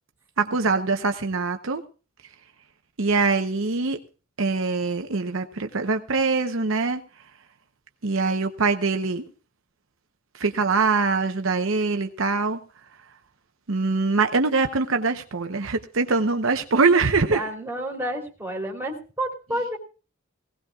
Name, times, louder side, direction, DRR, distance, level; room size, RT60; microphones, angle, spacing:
voice 1, 0.4-1.8 3.0-4.0 4.4-7.0 8.0-9.3 10.3-12.6 13.7-17.4, right 4 dB, 70° right, 6 dB, 0.9 m, -23 dB
voice 2, 17.3-19.8, right 1 dB, 10° right, -1 dB, 3.3 m, -30 dB
19.5 x 17.0 x 2.4 m, 0.36 s
head